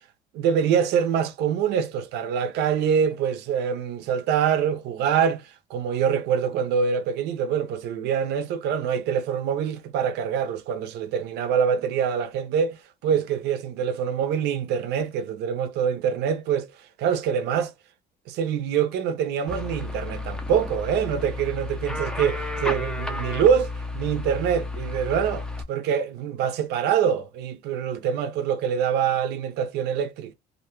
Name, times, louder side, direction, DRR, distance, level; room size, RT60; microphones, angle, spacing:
voice 1, 0.3-16.7 17.0-17.7 18.3-30.3, right 7 dB, 85° right, 0.6 m, -25 dB
sound 1, 19.5-25.6, left 2 dB, 5° left, 0.5 m, -32 dB
2.6 x 2.1 x 2.9 m
cardioid pair, 110°, 17 cm